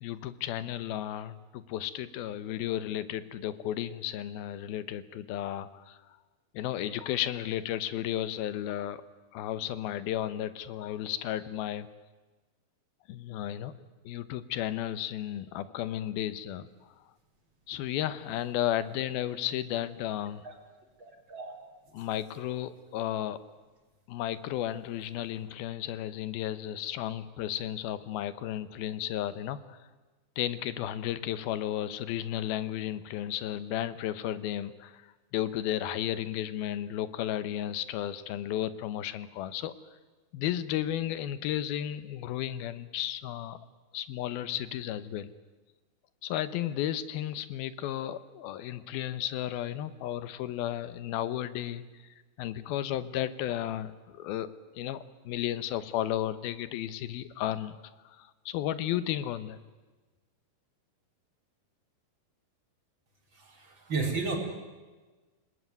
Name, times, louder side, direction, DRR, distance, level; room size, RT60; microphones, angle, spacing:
voice 1, 0.0-6.0 6.5-9.0 9.3-11.9 13.1-13.7 14.0-16.7 17.7-20.4 21.9-23.4 24.1-29.8 30.4-35.0 35.3-39.7 40.3-43.6 43.9-45.3 46.2-51.8 52.4-54.5 54.7-57.8 58.1-59.6, left 12 dB, 90° left, 14 dB, 2.9 m, -33 dB
voice 2, 21.0-21.5 63.3-64.4, right 4 dB, 30° right, 2 dB, 4.5 m, -33 dB
29.0 x 19.0 x 9.4 m, 1.3 s
omnidirectional pair, 4.2 m